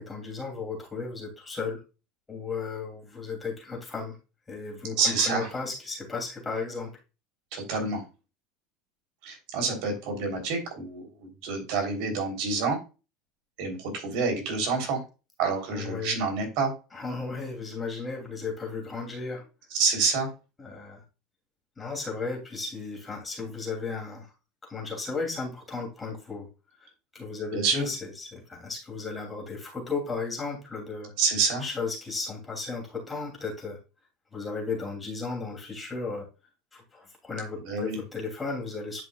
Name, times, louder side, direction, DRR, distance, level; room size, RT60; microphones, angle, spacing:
voice 1, 0.0-1.8 2.3-4.2 4.5-6.9 15.7-16.2 16.9-19.4 20.6-21.0 21.8-24.3 24.7-26.5 26.8-26.9 27.1-31.1 31.6-33.8 34.3-36.3 36.7-39.0, left 4 dB, 15° left, -1 dB, 2.9 m, -35 dB
voice 2, 5.0-5.5 7.5-8.0 9.2-12.8 13.6-15.0 15.4-16.7 19.7-20.3 27.5-27.9 31.2-31.6 37.6-38.0, right 4 dB, 65° right, 2 dB, 3.5 m, -27 dB
10.5 x 5.3 x 2.4 m, 0.30 s
supercardioid pair, 135°, 0 cm